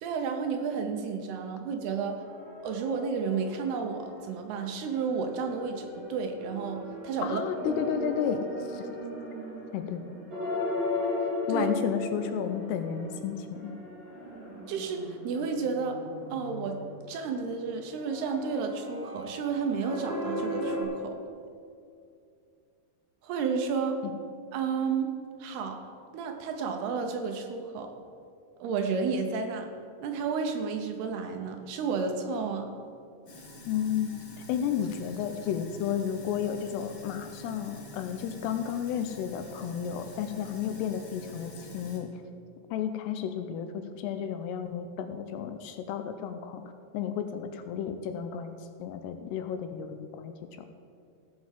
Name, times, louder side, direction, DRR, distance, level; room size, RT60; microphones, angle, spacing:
voice 1, 0.0-2.2 2.6-7.4 11.5-11.7 14.7-16.0 16.3-16.8 17.1-21.2 23.2-24.0 24.5-25.8 26.1-27.9 28.6-29.7 30.0-32.7, right 5 dB, 75° right, 5 dB, 2.7 m, -31 dB
sound 1, 2.2-4.4 4.7-20.8, left 1 dB, 30° right, 3.6 m, -37 dB
voice 2, 7.2-8.9 9.7-10.0 11.5-13.7 24.0-24.1 33.7-34.1 34.5-42.1 42.7-46.6 46.9-50.7, left 8 dB, 80° left, 8 dB, 2.6 m, -32 dB
Sink (filling or washing), 33.3-42.0, equal, 50° left, 1.6 m, -47 dB
15.5 x 6.1 x 7.4 m, 2.4 s
omnidirectional pair, 5.1 m